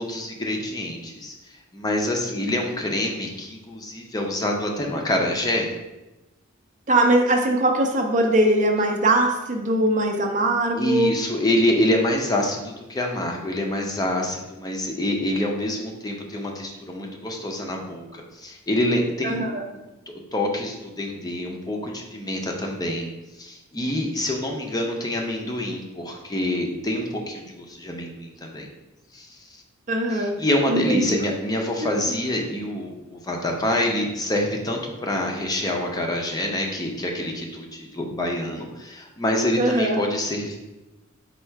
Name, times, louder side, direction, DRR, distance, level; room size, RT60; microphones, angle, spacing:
voice 1, 0.0-1.3 1.7-5.7 10.7-19.5 20.3-23.1 23.4-28.7 29.1-29.3 30.1-40.6, left 1 dB, 20° left, 1 dB, 0.5 m, -26 dB
voice 2, 6.9-11.1 19.2-19.6 29.9-30.4 30.7-31.2 31.8-31.9 39.6-40.0, right 1 dB, 35° right, 3 dB, 0.4 m, -21 dB
4.3 x 2.3 x 4.5 m, 1.0 s
head